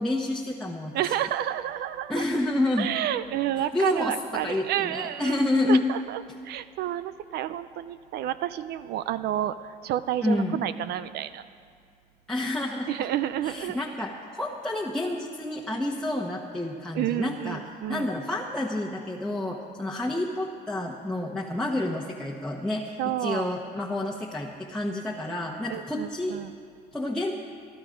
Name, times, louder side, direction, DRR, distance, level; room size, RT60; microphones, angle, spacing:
voice 1, 0.0-1.1 2.1-2.9 3.6-5.9 10.2-10.6 12.3-12.9 13.4-17.6 17.9-26.4 26.9-27.3, left 2 dB, 5° left, -3 dB, 1.1 m, -29 dB
voice 2, 0.9-2.2 2.8-5.4 5.7-9.6 9.8-11.4 12.9-13.8 16.9-18.1 23.0-23.5 25.7-26.5, right 12 dB, 70° right, 13 dB, 0.5 m, -30 dB
19.0 x 12.0 x 5.1 m, 2.2 s
cardioid pair, 110°, 17 cm